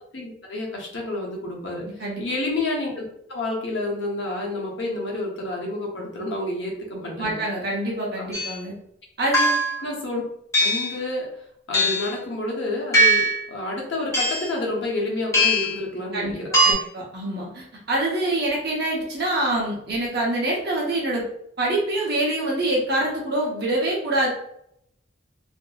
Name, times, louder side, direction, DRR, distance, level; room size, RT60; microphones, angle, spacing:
voice 1, 0.1-1.9 2.2-3.0 3.3-7.4 9.8-10.2 10.6-11.3 11.7-16.8, left 2 dB, 60° left, -1 dB, 0.8 m, -29 dB
voice 2, 7.2-8.7 9.2-9.6 16.1-16.3 16.6-21.2 21.6-24.3, right 1 dB, 55° right, -3 dB, 0.8 m, -25 dB
sound 1, 8.3-8.5 9.3-9.8 10.5-10.9 11.7-12.1 12.9-13.4 14.1-14.5 15.3-15.8 16.5-16.7, equal, 15° left, 0.7 m, -20 dB
2.7 x 2.5 x 2.3 m, 0.71 s
head